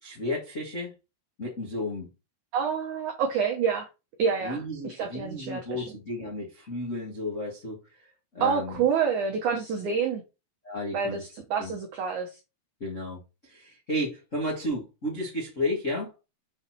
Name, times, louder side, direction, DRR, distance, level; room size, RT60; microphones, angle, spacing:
voice 1, 0.0-0.9 1.4-2.1 4.4-7.8 8.3-8.8 10.6-11.2 11.6-11.7 12.8-16.1, left 1 dB, 60° left, 0.7 m, -33 dB
voice 2, 2.5-3.9 4.2-5.9 8.4-10.2 10.9-12.3, right 6 dB, 80° right, 1.7 m, -28 dB
7.1 x 4.5 x 4.3 m
omnidirectional pair, 5.0 m